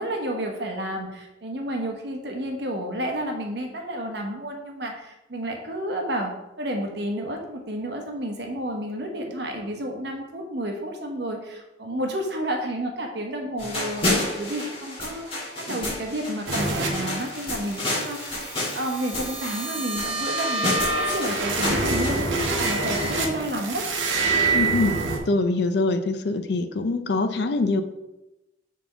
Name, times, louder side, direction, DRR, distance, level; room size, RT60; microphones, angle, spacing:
voice 1, 0.0-18.2 18.7-23.9, right 1 dB, 60° right, 3 dB, 1.0 m, -31 dB
sound 1, 13.6-22.2, left 2 dB, 30° left, 1.8 m, -30 dB
sound 2, 16.5-25.2, right 3 dB, 85° right, 0.9 m, -26 dB
voice 2, 24.5-25.0 25.3-27.8, left 3 dB, 60° left, 9 dB, 0.5 m, -23 dB
4.2 x 4.1 x 5.6 m, 0.95 s
head